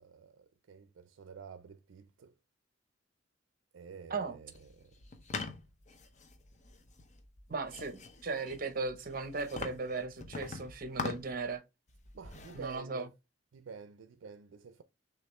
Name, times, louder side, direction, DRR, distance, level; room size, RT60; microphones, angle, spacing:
voice 1, 0.0-2.3 3.7-5.0 5.3-5.5 12.1-13.1 13.5-14.8, right 6 dB, 80° right, 0.4 m, -50 dB
sound 1, 4.5-11.5 11.9-12.7, left 4 dB, 40° left, 0.6 m, -44 dB
voice 2, 7.5-11.6 12.5-13.1, right 3 dB, 50° right, 0.7 m, -37 dB
6.3 x 2.4 x 3.1 m
head